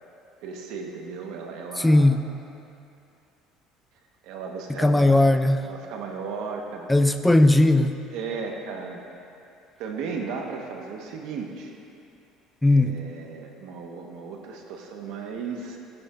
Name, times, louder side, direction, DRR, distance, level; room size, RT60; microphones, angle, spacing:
voice 1, 0.4-2.1 4.2-5.2 5.6-6.9 7.3-7.4 8.1-9.0 9.8-11.7 12.7-15.8, right 5 dB, 70° right, 1 dB, 1.4 m, -35 dB
voice 2, 1.8-2.2 4.8-5.6 6.9-7.9 12.6-13.0, left 1 dB, 5° left, 9 dB, 0.4 m, -18 dB
16.0 x 10.5 x 2.6 m, 2.6 s
cardioid pair, 155°, 0 cm